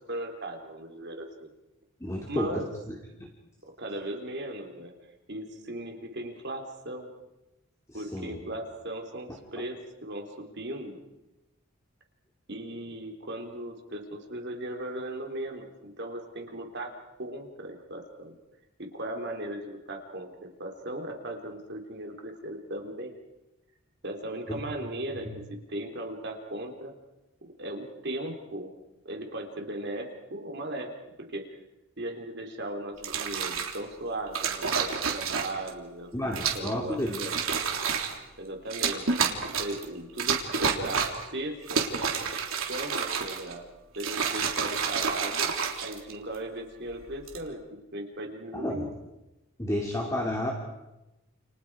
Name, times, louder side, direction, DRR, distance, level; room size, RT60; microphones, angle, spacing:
voice 1, 0.0-1.5 2.3-2.7 3.8-4.9 5.3-7.1 7.9-11.0 12.5-16.9 17.2-18.4 18.8-23.2 24.0-26.9 27.4-28.7 29.1-30.9 31.2-31.6 32.0-36.1 36.5-37.4 38.4-39.1 39.6-42.1 42.7-43.6 44.0-45.5 45.8-48.9 50.0-50.1, right 1 dB, 50° right, 2 dB, 3.6 m, -37 dB
voice 2, 2.0-2.9 7.9-8.4 9.3-9.4 24.5-24.6 25.2-25.3 36.1-37.2 48.5-48.9 49.6-50.5, left 1 dB, 15° left, 1 dB, 2.6 m, -31 dB
sound 1, 33.0-33.8 34.3-35.7 36.3-36.7 37.1-38.2 38.7-39.8 40.2-41.3 41.6-43.5 43.9-46.4 47.1-47.4, right 6 dB, 70° right, 3.4 m, -29 dB
30.0 x 29.5 x 4.9 m, 0.98 s
head